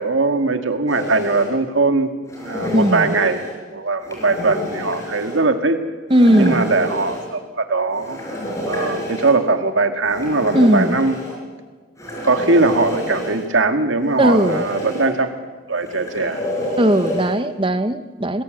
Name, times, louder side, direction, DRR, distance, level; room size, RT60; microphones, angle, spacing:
voice 1, 0.0-2.1 2.4-3.4 3.7-5.8 6.3-8.2 8.7-11.2 12.2-15.3 15.7-16.4, right 3 dB, 70° right, 7 dB, 1.9 m, -20 dB
sound 1, 0.9-1.5 2.3-3.5 4.0-5.4 6.1-7.3 8.0-9.3 10.1-11.4 12.0-13.5 14.0-15.1 15.8-17.3, left 1 dB, 15° left, 5.4 m, -28 dB
voice 2, 2.7-3.1 6.1-6.7 10.5-11.0 14.2-14.6 16.8-18.4, right 1 dB, 25° right, 10 dB, 1.1 m, -17 dB
26.5 x 19.5 x 7.8 m, 1.4 s
head